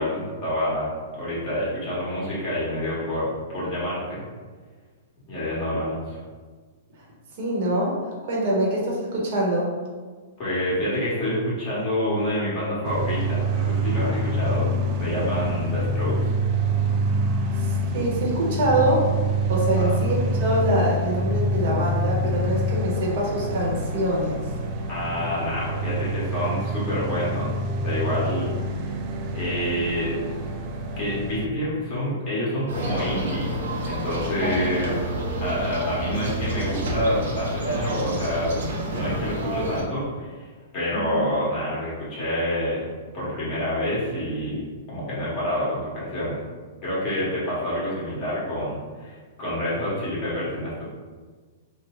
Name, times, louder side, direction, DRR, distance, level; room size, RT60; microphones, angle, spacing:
voice 1, 0.0-4.2 5.3-6.2 10.4-14.7 15.0-16.4 19.7-20.0 24.9-27.5 27.8-28.5 29.3-30.1 31.0-33.6 33.8-35.1 35.4-38.5 38.9-40.5 40.7-42.9 43.1-46.4 46.8-50.8, left 1 dB, 30° left, -9 dB, 1.3 m, -27 dB
voice 2, 7.4-8.0 8.3-9.7 17.9-19.1 19.5-24.5 34.4-34.7 40.9-41.2, right 1 dB, 45° right, -4 dB, 0.9 m, -24 dB
sound 1, 12.8-31.5, right 1 dB, 30° right, 0.3 m, -26 dB
sound 2, 32.7-39.8, right 1 dB, 80° right, 0.8 m, -29 dB
3.0 x 2.1 x 3.7 m, 1.5 s
hypercardioid pair, 160°, 0 cm